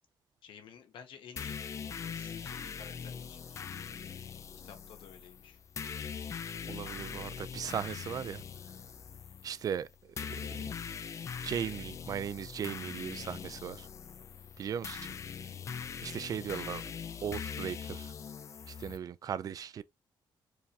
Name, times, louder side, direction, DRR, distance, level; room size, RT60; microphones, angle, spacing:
voice 1, 0.4-1.6 1.9-3.8 4.6-5.6 15.8-15.9, left 7 dB, 75° left, 1.3 m, -53 dB
sound 1, 1.4-19.0, left 7 dB, 35° left, 0.3 m, -42 dB
voice 2, 6.7-8.4 9.4-10.4 11.4-13.9 14.6-15.1 16.0-16.8 17.2-18.1 18.7-19.8, right 8 dB, 45° right, 0.4 m, -37 dB
4.7 x 3.3 x 2.7 m
cardioid pair, 145°, 9 cm